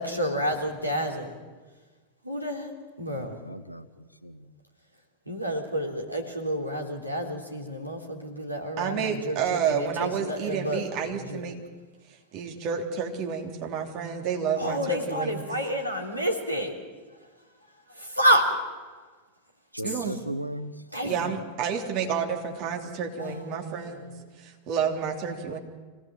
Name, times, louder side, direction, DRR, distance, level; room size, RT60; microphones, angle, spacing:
voice 1, 0.0-1.3 2.2-2.7 3.0-3.4 5.3-11.5 14.6-16.7 18.0-18.5 20.9-21.3 23.2-24.1 25.5-25.6, equal, 85° right, 1 dB, 3.6 m, -29 dB
voice 2, 3.1-4.6 5.9-6.0 19.7-20.8, equal, 90° left, 11 dB, 1.2 m, -37 dB
voice 3, 8.8-11.6 12.3-15.4 19.8-20.1 21.0-24.1 24.4-25.6, right 7 dB, 40° right, 2 dB, 3.4 m, -30 dB
25.5 x 18.0 x 7.8 m, 1.4 s
figure-of-eight pair, 90°, 0 cm